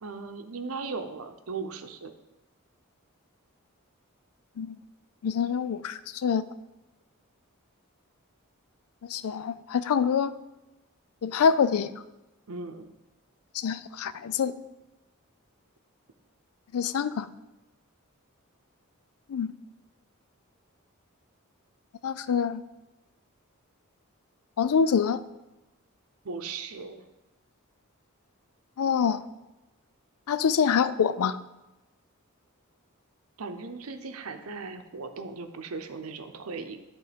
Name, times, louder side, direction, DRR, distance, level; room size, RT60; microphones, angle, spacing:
voice 1, 0.0-2.1 12.5-12.9 26.2-27.0 33.4-36.8, right 4 dB, 80° right, 7 dB, 0.7 m, -37 dB
voice 2, 5.2-6.4 9.0-10.3 11.2-11.9 13.5-14.5 16.7-17.3 19.3-19.5 22.0-22.6 24.6-25.2 28.8-29.2 30.3-31.4, left 6 dB, 90° left, 15 dB, 0.4 m, -25 dB
11.0 x 3.8 x 5.1 m, 1.0 s
head